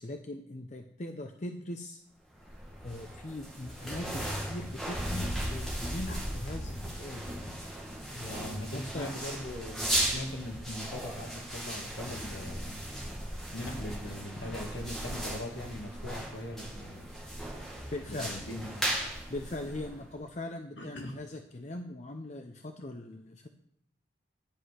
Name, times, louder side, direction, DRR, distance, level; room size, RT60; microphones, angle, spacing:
voice 1, 0.0-2.0 2.8-7.3 8.1-8.4 8.7-9.1 17.9-18.4 19.3-23.5, left 1 dB, 35° left, 4 dB, 0.6 m, -40 dB
sound 1, 2.3-20.2, right 1 dB, ahead, 1.9 m, -37 dB
voice 2, 8.3-12.8 13.5-17.2 18.1-18.9 20.8-21.2, left 1 dB, 65° left, 2 dB, 1.6 m, -41 dB
10.5 x 7.8 x 4.9 m, 0.71 s
head